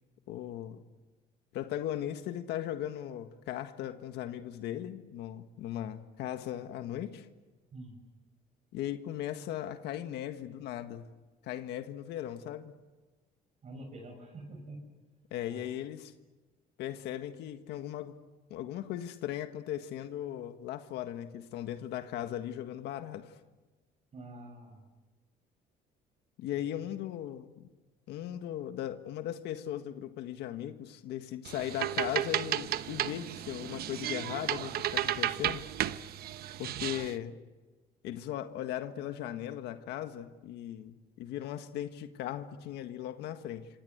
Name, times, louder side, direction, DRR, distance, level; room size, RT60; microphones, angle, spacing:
voice 1, 0.3-0.8 1.5-7.3 8.7-11.1 11.4-12.7 15.3-16.1 16.8-18.2 18.5-23.4 26.4-27.7 28.1-35.6 36.6-37.4 38.0-43.7, left 11 dB, 80° left, 8 dB, 1.7 m, -38 dB
voice 2, 13.6-14.8 15.5-15.7 24.1-24.8 26.5-26.8, right 2 dB, 40° right, 3 dB, 6.6 m, -47 dB
sound 1, 31.5-37.1, right 12 dB, 65° right, 1.1 m, -33 dB
27.0 x 26.5 x 8.1 m, 1.3 s
cardioid pair, 110°, 17 cm